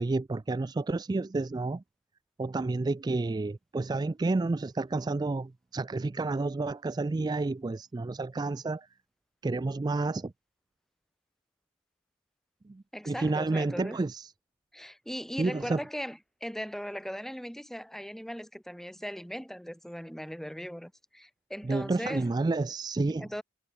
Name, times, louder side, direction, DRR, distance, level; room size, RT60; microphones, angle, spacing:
voice 1, 0.0-1.8 2.4-8.9 9.4-10.3 12.7-14.3 15.4-15.8 21.6-23.3, right 3 dB, 20° right, 0.3 m, -30 dB
voice 2, 12.9-14.0 14.7-22.3 23.2-23.4, equal, ahead, 1.3 m, -39 dB
head